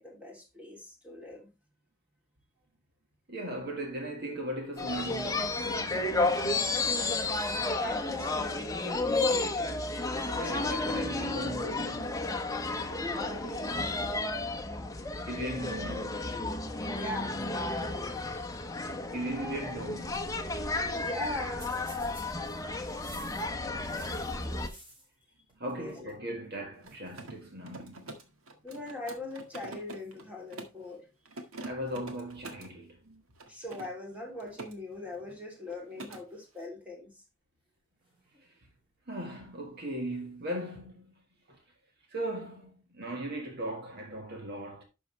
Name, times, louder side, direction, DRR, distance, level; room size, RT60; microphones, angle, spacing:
voice 1, 0.0-1.5 7.7-9.9 10.1-10.8 12.7-14.2 14.6-15.1 16.9-18.2 18.5-18.7 20.9-21.8 25.6-26.1 28.6-31.0 33.5-37.2, left 2 dB, 5° right, 3.1 m, -41 dB
voice 2, 3.3-7.1 10.3-12.2 15.3-16.2 19.1-20.4 23.9-24.2 25.6-28.2 31.6-33.2 39.1-41.1 41.5-41.6 42.1-44.8, right 1 dB, 50° right, 1.8 m, -38 dB
sound 1, 4.8-24.7, left 2 dB, 15° left, 1.0 m, -32 dB
sound 2, 21.6-25.2 25.5-26.3 26.5-26.6 26.8-27.2 28.0-28.3 29.1-29.4 30.0-31.0 34.0-34.1 34.5-35.3 35.7-35.8 36.7-36.8 38.0-38.8 40.1-40.7, right 1 dB, 25° right, 5.1 m, -56 dB
Mechanisms, 26.7-30.8 31.3-32.7 33.4-34.7 35.0-35.4 35.7-36.2, right 2 dB, 90° right, 1.7 m, -46 dB
11.5 x 6.3 x 3.3 m
head